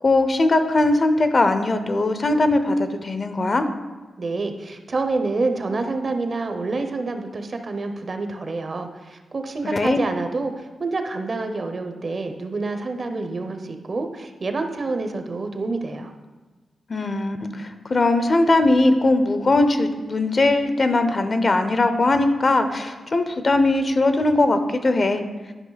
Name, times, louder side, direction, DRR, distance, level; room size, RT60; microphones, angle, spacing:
voice 1, 0.0-3.6 9.6-10.0 16.9-25.2, left 2 dB, 40° left, 8 dB, 0.7 m, -20 dB
voice 2, 4.2-16.1, right 3 dB, 45° right, 6 dB, 0.8 m, -27 dB
11.0 x 5.4 x 4.0 m, 1.2 s
cardioid pair, 95°, 0 cm